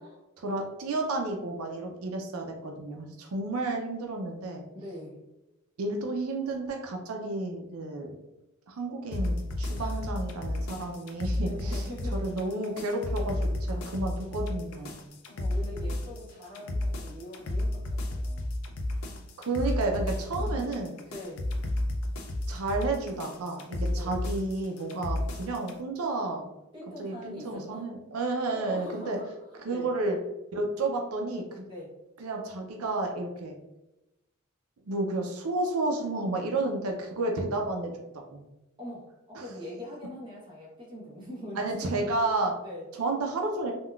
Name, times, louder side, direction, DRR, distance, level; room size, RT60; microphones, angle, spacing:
voice 1, 0.4-4.6 5.8-8.1 8.7-11.8 12.1-15.0 19.4-21.0 22.5-26.5 27.0-29.2 29.7-30.2 30.5-31.7 32.2-33.6 34.9-37.9 38.3-38.4 39.4-39.5 41.6-42.5 43.0-43.7, right 2 dB, 90° right, 2 dB, 0.5 m, -31 dB
voice 2, 4.7-5.2 9.7-10.0 11.4-12.3 15.3-18.5 19.6-19.7 20.4-20.7 21.1-21.4 24.0-24.2 26.7-27.8 28.5-29.9 31.6-32.0 38.8-41.9 42.6-42.9, equal, 20° right, -4 dB, 0.9 m, -42 dB
sound 1, 9.1-25.8, left 1 dB, 75° left, 0.4 m, -32 dB
3.6 x 2.3 x 2.3 m, 0.94 s
head